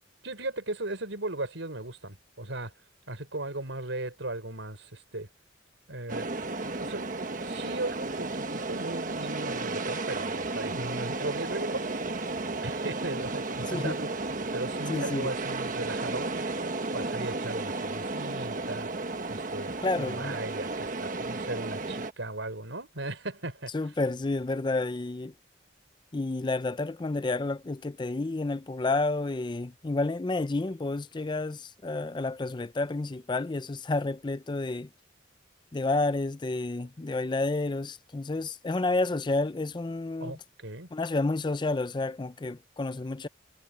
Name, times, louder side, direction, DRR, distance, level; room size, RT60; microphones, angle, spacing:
voice 1, 0.2-2.7 3.1-5.3 5.9-7.1 7.5-11.8 12.6-14.1 14.5-16.3 16.9-18.9 19.3-19.7 20.0-23.7 40.2-40.9, right 2 dB, 85° right, 5.1 m, -37 dB
sound 1, 6.1-22.1, right 3 dB, 45° right, 1.3 m, -33 dB
voice 2, 13.7-14.0 14.9-15.3 19.8-20.4 23.7-25.3 26.1-34.9 35.7-40.4 40.9-43.3, left 2 dB, 25° left, 0.4 m, -30 dB
head